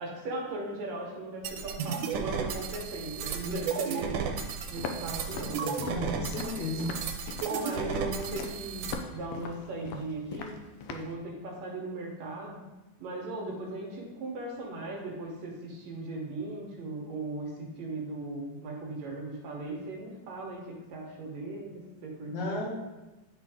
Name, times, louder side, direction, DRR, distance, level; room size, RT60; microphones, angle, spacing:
voice 1, 0.0-4.2 4.7-5.6 6.3-6.6 7.4-10.6 10.9-12.6 13.0-22.7, right 2 dB, 65° right, -1 dB, 2.1 m, -38 dB
sound 1, 1.4-8.9, right 6 dB, 90° right, 2.2 m, -34 dB
Walk footsteps, 4.8-11.1, left 5 dB, 85° left, 1.4 m, -40 dB
voice 2, 5.3-6.9 22.3-22.8, left 1 dB, 70° left, -1 dB, 2.5 m, -34 dB
10.5 x 3.7 x 3.5 m, 1.1 s
omnidirectional pair, 3.6 m